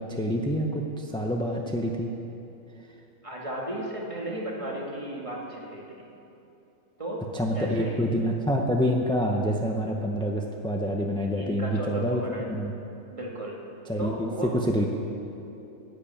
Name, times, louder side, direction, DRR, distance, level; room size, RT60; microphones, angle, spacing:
voice 1, 0.0-2.1 7.3-12.7 13.9-14.9, equal, 5° left, 1 dB, 0.5 m, -27 dB
voice 2, 3.2-6.1 7.0-7.2 7.5-8.1 11.3-12.5 13.1-13.6 14.0-14.9, right 1 dB, 25° right, -3 dB, 2.2 m, -35 dB
11.5 x 10.5 x 8.6 m, 2.9 s
omnidirectional pair, 1.5 m